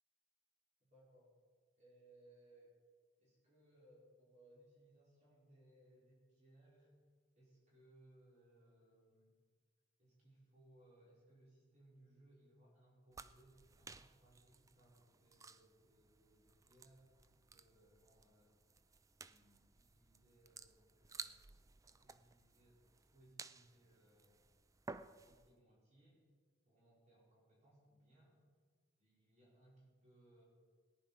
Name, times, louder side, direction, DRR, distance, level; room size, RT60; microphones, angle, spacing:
voice 1, 0.8-1.3 1.8-2.7 3.2-6.9 7.3-9.3 10.0-18.6 19.2-21.5 21.8-24.4 25.2-26.2 26.7-28.4 29.0-30.4, right 1 dB, 40° right, -7 dB, 5.4 m, -67 dB
sound 1, 13.1-25.5, right 4 dB, 15° right, 0.4 m, -56 dB
18.5 x 10.5 x 5.1 m, 1.5 s
head